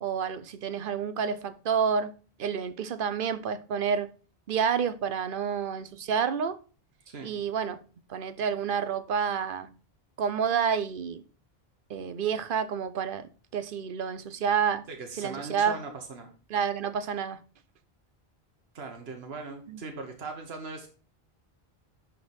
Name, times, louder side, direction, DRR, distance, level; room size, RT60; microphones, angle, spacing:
voice 1, 0.0-2.1 2.4-4.1 4.5-6.6 7.2-7.8 8.1-9.7 10.2-11.2 11.9-14.8 15.2-15.8 16.5-17.4 19.7-19.8, right 7 dB, 60° right, 0.8 m, -29 dB
voice 2, 14.9-16.3 18.7-20.9, right 4 dB, 75° right, 1.5 m, -39 dB
11.5 x 3.9 x 4.3 m
omnidirectional pair, 1.1 m